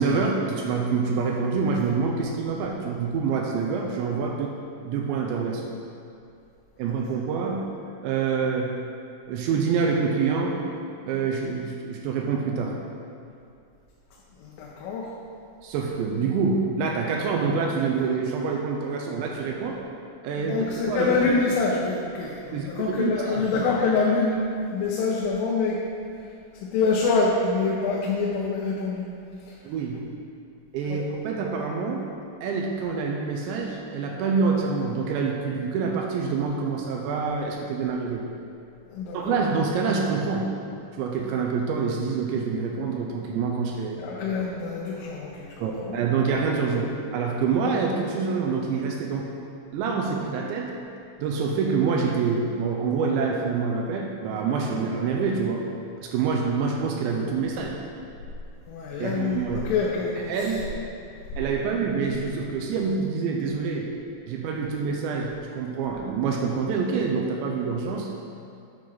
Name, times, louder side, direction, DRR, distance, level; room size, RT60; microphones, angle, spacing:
voice 1, 0.0-4.5 4.8-5.6 6.8-7.6 8.0-8.8 9.3-10.6 11.0-12.7 15.6-19.8 20.2-21.2 22.5-23.7 29.6-30.0 30.7-32.0 32.4-38.3 39.1-40.5 41.0-44.0 45.6-49.3 49.7-50.7 51.2-55.6 56.0-57.8 59.0-59.7 60.3-60.7 61.4-63.9 64.3-68.1, right 5 dB, 80° right, 0 dB, 2.7 m, -26 dB
voice 2, 14.4-15.1 20.4-24.4 24.7-25.8 26.6-29.1 30.9-31.0 38.9-39.4 44.0-45.5 45.8-45.9 58.7-60.3, left 4 dB, 85° left, -4 dB, 3.4 m, -25 dB
9.3 x 4.7 x 5.7 m, 2.5 s
omnidirectional pair, 5.6 m